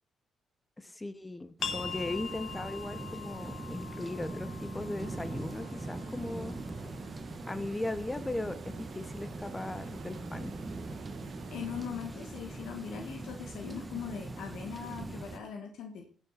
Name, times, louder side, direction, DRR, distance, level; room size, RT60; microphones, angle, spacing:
voice 1, 0.8-6.6 7.5-10.5, left 2 dB, 15° left, 13 dB, 1.0 m, -38 dB
sound 1, 1.6-7.0, left 7 dB, 65° left, 1.2 m, -43 dB
sound 2, 1.6-15.4, right 2 dB, 20° right, 1.2 m, -41 dB
sound 3, 5.0-11.9, right 11 dB, 85° right, 0.6 m, -52 dB
voice 2, 11.5-16.1, left 7 dB, 80° left, 3 dB, 1.9 m, -40 dB
19.0 x 6.5 x 4.3 m, 0.42 s
cardioid pair, 90°, 0 cm